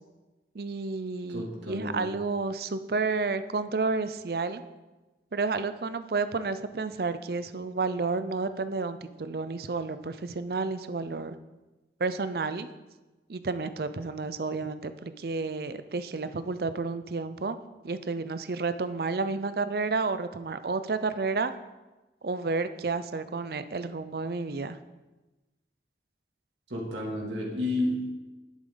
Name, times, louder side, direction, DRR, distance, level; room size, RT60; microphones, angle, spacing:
voice 1, 0.5-4.6 5.3-11.4 12.0-12.7 13.3-17.6 17.8-21.5 22.2-24.8, right 4 dB, 60° right, 12 dB, 0.5 m, -31 dB
voice 2, 1.3-2.1 26.7-28.1, left 1 dB, 90° right, -3 dB, 2.5 m, -31 dB
10.5 x 8.8 x 3.9 m, 1.1 s
head